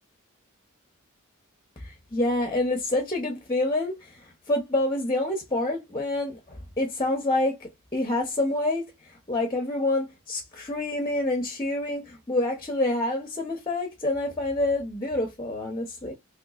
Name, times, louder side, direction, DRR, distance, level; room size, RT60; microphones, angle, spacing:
voice 1, 1.8-8.9 9.3-16.1, left 2 dB, 20° left, 0.9 m, -27 dB
3.4 x 2.9 x 2.4 m
head